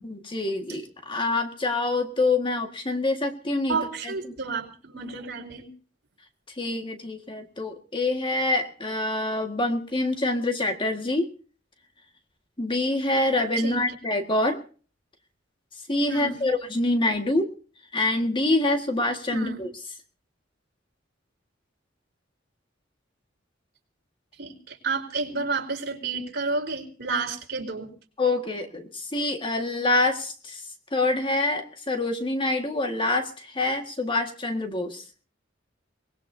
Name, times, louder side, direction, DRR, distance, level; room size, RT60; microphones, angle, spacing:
voice 1, 0.0-3.8 4.0-4.1 6.6-11.3 12.6-14.6 15.9-17.5 17.9-19.7 28.2-30.6 30.9-35.0, left 2 dB, 25° left, 5 dB, 1.8 m, -26 dB
voice 2, 3.7-5.7 13.6-13.8 16.1-16.4 19.3-19.6 24.4-27.9, right 4 dB, 60° right, 1 dB, 4.4 m, -31 dB
24.0 x 20.0 x 2.8 m, 0.40 s
head